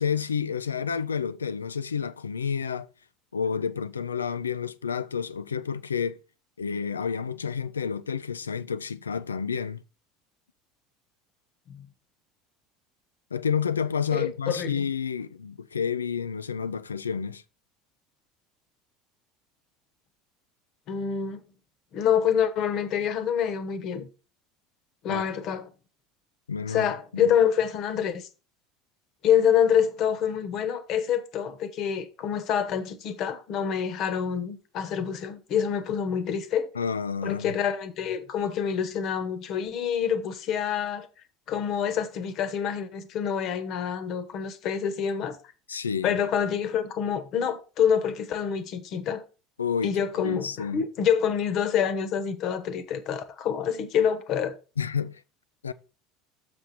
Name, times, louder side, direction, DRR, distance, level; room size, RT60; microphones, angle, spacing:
voice 1, 0.0-2.9 3.3-6.2 6.6-9.8 13.3-17.4 25.1-25.2 26.5-27.3 36.8-37.6 45.7-46.2 49.6-50.8 54.8-55.2 55.6-55.7, left 6 dB, 80° left, 0.4 m, -30 dB
voice 2, 14.1-14.9 20.9-21.4 21.9-24.1 25.0-25.7 26.7-28.3 29.2-36.7 37.2-41.1 41.5-45.4 46.0-49.2 49.8-54.5, left 8 dB, 50° left, 1.1 m, -26 dB
6.8 x 6.2 x 4.2 m
figure-of-eight pair, 70°, 0 cm